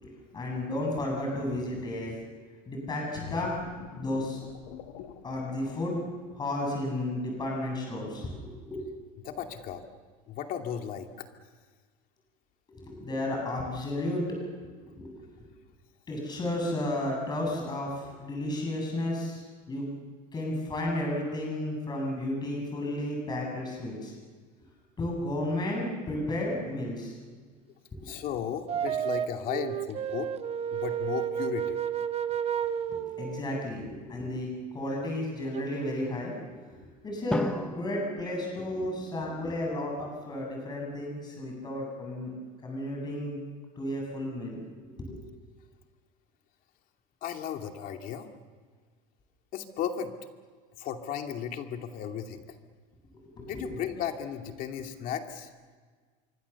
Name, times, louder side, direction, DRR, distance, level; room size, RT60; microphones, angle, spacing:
voice 1, 0.0-2.1 2.7-3.6 4.0-4.4 5.2-6.0 6.3-8.9 12.7-14.2 14.9-15.3 16.1-19.8 20.3-24.1 25.0-27.2 28.0-28.1 32.9-34.5 34.7-42.3 42.6-43.4 43.8-44.6 44.9-45.2 53.1-53.7, left 1 dB, 20° left, 0 dB, 7.8 m, -33 dB
sound 1, 3.1-6.7 7.2-7.4, left 8 dB, 80° left, 2.4 m, -46 dB
voice 2, 9.2-9.8 10.3-11.3 28.0-30.3 30.7-31.8 47.2-48.3 49.5-50.1 50.8-52.6 53.4-55.5, left 8 dB, 45° left, 4 dB, 2.5 m, -35 dB
sound 2, 28.7-33.7 35.5-35.7, right 9 dB, 35° right, 1.0 m, -31 dB
Drum, 37.3-39.4, left 1 dB, 5° left, 1.2 m, -35 dB
26.0 x 24.0 x 7.1 m, 1.5 s
supercardioid pair, 140°, 19 cm